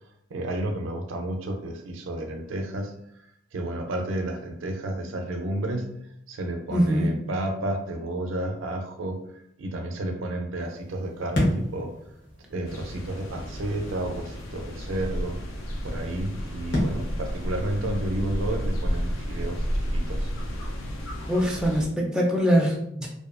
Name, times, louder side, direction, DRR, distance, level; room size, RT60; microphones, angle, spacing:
voice 1, 0.3-2.9 3.2-6.0 6.3-11.9 12.5-15.4 15.8-19.7 19.9-20.3, right 1 dB, 80° right, 4 dB, 0.4 m, -31 dB
voice 2, 6.7-7.1 21.3-23.1, equal, 5° right, -2 dB, 0.3 m, -23 dB
sound 1, 10.6-19.8, left 1 dB, 65° left, 0.9 m, -34 dB
sound 2, 12.7-21.9, equal, 90° left, 0.5 m, -31 dB
2.5 x 2.3 x 2.4 m, 0.75 s
head